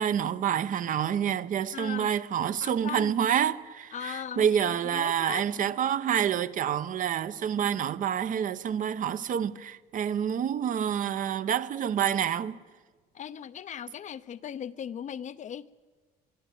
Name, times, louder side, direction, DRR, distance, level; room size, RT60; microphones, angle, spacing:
voice 1, 0.0-12.6, right 9 dB, 50° right, 0.8 m, -28 dB
voice 2, 1.7-2.1 2.6-3.1 3.9-5.4 13.1-15.7, left 9 dB, 45° left, 0.7 m, -38 dB
22.5 x 14.5 x 9.3 m
cardioid pair, 110°, 17 cm